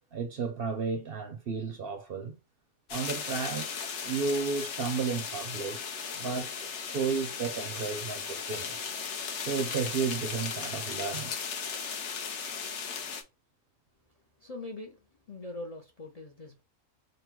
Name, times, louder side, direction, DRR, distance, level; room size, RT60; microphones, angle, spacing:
voice 1, 0.1-2.4 2.9-5.8 6.2-8.9 9.5-11.3, right 5 dB, 55° right, 0.7 m, -33 dB
sound 1, 2.9-13.2, left 6 dB, 65° left, 1.0 m, -36 dB
voice 2, 14.4-16.6, left 2 dB, 40° left, 0.6 m, -42 dB
3.9 x 2.2 x 4.4 m
omnidirectional pair, 1.4 m